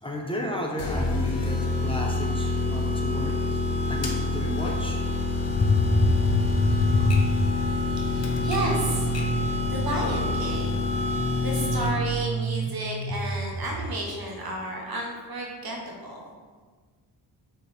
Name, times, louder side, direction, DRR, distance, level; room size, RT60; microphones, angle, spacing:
voice 1, 0.0-3.6 3.9-5.0 5.5-7.5, left 2 dB, 15° left, -1 dB, 1.0 m, -26 dB
sound 1, 0.8-12.2, left 3 dB, 85° left, 1.3 m, -27 dB
Typewriter, 4.0-9.5, left 2 dB, 40° left, 1.1 m, -41 dB
sound 2, 7.1-14.0, right 4 dB, 30° right, 0.6 m, -31 dB
voice 2, 8.0-9.1 9.7-10.9 11.4-16.3, right 1 dB, 60° right, 0 dB, 1.4 m, -32 dB
5.8 x 4.4 x 4.4 m, 1.5 s
cardioid pair, 80°, 41 cm